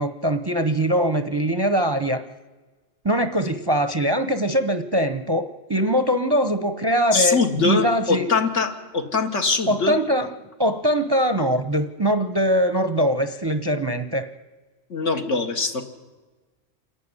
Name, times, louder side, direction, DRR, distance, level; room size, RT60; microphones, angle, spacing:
voice 1, 0.0-2.2 3.0-8.3 9.7-10.3 10.6-14.3, equal, 25° right, 10 dB, 0.7 m, -22 dB
voice 2, 7.1-10.0 14.9-15.8, left 4 dB, 75° left, 4 dB, 2.1 m, -22 dB
27.5 x 11.5 x 9.7 m, 1.3 s
omnidirectional pair, 1.3 m